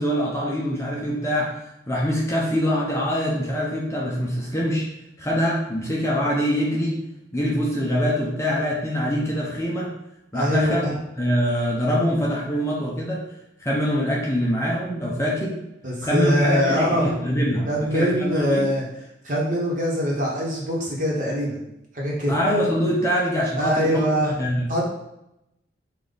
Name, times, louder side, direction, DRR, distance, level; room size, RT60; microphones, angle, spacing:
voice 1, 0.0-1.6 1.9-4.9 5.2-7.0 7.3-9.9 10.3-10.9 11.2-13.2 13.6-15.6 16.0-18.7 22.3-24.1 24.4-24.7, equal, 15° left, -4 dB, 0.6 m, -24 dB
voice 2, 10.3-10.9 15.8-17.1 17.7-18.8 19.2-21.6 21.9-22.4 23.6-24.3 24.7-24.8, equal, 40° right, -4 dB, 1.2 m, -23 dB
5.2 x 2.5 x 3.9 m, 0.85 s
head